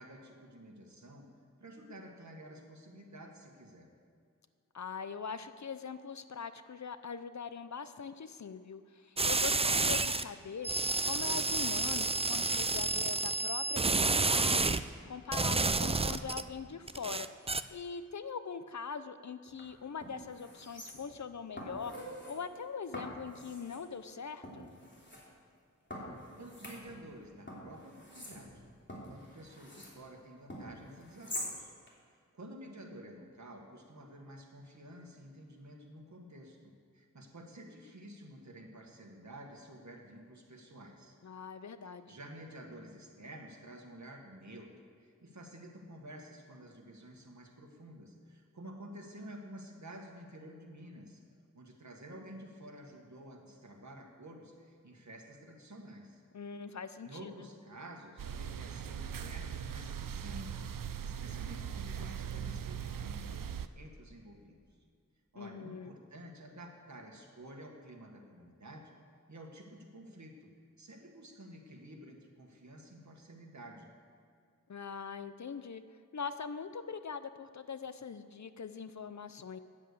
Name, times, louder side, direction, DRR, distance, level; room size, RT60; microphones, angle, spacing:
voice 1, 0.0-1.3 1.6-3.9 26.4-28.6 29.1-31.7 32.3-41.2 41.8-51.2 51.5-56.2 57.0-60.7 61.0-63.4 63.7-64.6 65.3-68.9 69.3-70.5 70.8-73.9, right 1 dB, 60° right, 1 dB, 1.6 m, -51 dB
voice 2, 4.7-10.7 11.0-14.8 15.0-17.3 17.7-21.9 22.3-24.7 41.2-42.2 56.3-57.1 65.4-65.9 74.7-75.8 76.1-79.6, left 6 dB, 60° left, 12 dB, 0.6 m, -42 dB
sound 1, 9.2-10.2 10.6-14.8 15.3-16.4 16.9-17.6, right 3 dB, 20° right, 0.4 m, -30 dB
sound 2, 19.5-19.6 20.0-21.2 21.6-22.4 22.9-23.8 24.4-25.2 25.9-27.2 27.5-30.0 30.5-31.5 31.9-32.0, left 1 dB, 35° left, 3.1 m, -45 dB
sound 3, 58.2-63.7, right 8 dB, 85° right, 0.5 m, -40 dB
9.9 x 7.5 x 8.3 m, 2.3 s
wide cardioid pair, 50°, 32 cm